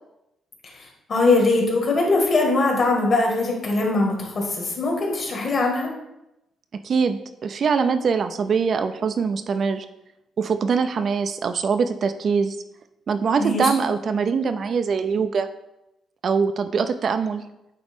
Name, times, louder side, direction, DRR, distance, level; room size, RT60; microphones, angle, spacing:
voice 1, 1.1-5.9 13.4-13.7, left 3 dB, 50° left, 0 dB, 1.9 m, -21 dB
voice 2, 6.8-9.9 10.4-12.6 13.1-15.5 16.2-17.4, right 5 dB, 50° right, 9 dB, 0.4 m, -23 dB
8.9 x 3.0 x 3.6 m, 0.89 s
cardioid pair, 90°, 0 cm